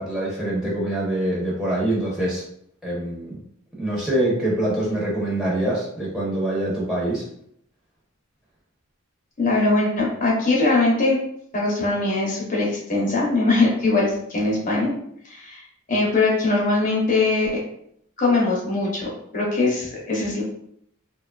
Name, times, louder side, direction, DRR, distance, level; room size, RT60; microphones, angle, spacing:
voice 1, 0.0-2.4 2.8-3.4 3.8-7.2, right 1 dB, 5° right, -7 dB, 0.7 m, -24 dB
voice 2, 9.4-11.2 11.5-14.9 15.2-15.6 15.9-17.6 18.2-20.4, left 2 dB, 40° left, -3 dB, 0.7 m, -21 dB
2.8 x 2.2 x 2.3 m, 0.70 s
head